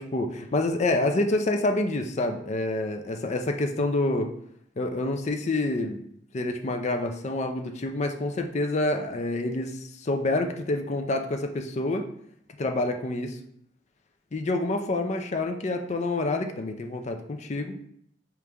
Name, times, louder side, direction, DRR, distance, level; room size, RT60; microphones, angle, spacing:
voice 1, 0.0-4.3 4.8-6.0 6.3-12.1 12.6-13.4 14.3-17.8, left 2 dB, 40° left, 5 dB, 0.5 m, -27 dB
5.0 x 3.1 x 3.4 m, 0.70 s
head